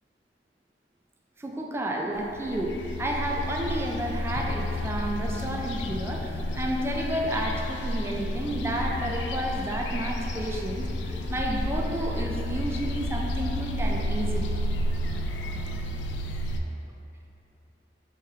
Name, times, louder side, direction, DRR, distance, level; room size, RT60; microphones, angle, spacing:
voice 1, 1.4-14.5, right 1 dB, 15° right, -1 dB, 0.3 m, -31 dB
sound 1, 2.3-16.6, left 1 dB, 80° left, 0.3 m, -31 dB
3.4 x 3.0 x 4.7 m, 2.9 s
head